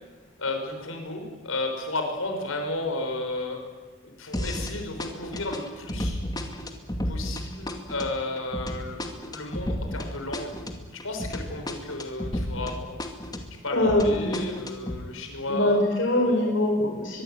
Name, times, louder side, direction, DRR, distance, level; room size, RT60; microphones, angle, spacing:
voice 1, 0.4-3.6 4.0-6.2 7.1-10.5 11.0-12.9 13.6-15.8 16.1-16.5, left 2 dB, 85° left, 3 dB, 5.9 m, -33 dB
sound 1, 4.3-4.7 5.0-12.7 13.0-15.0, left 1 dB, 20° left, 2.5 m, -32 dB
voice 2, 13.7-14.5 15.5-17.2, left 1 dB, 65° left, 1 dB, 4.9 m, -23 dB
23.5 x 23.0 x 9.3 m, 1.4 s
head